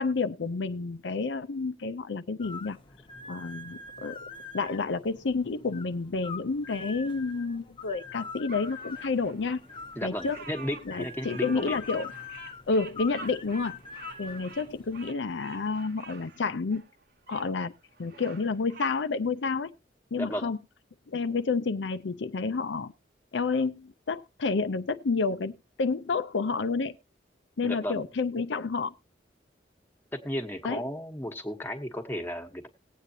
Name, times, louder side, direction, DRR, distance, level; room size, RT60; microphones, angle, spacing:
voice 1, 0.0-2.8 3.3-4.2 4.5-9.6 10.0-10.4 10.9-12.1 12.7-13.8 14.2-16.8 17.3-17.7 18.0-19.7 20.1-20.6 21.1-22.9 23.3-26.9 27.6-28.9 30.6-30.8, left 4 dB, 80° left, 0.6 m, -30 dB
sound 1, 2.4-15.1, left 4 dB, 25° left, 0.8 m, -44 dB
Bird vocalization bird call bird song, 8.5-17.5 17.9-18.9, right 4 dB, 55° right, 1.0 m, -48 dB
voice 2, 9.9-11.8 20.2-20.5 27.6-28.1 30.1-32.7, equal, 10° left, 1.2 m, -34 dB
19.0 x 8.3 x 2.7 m
head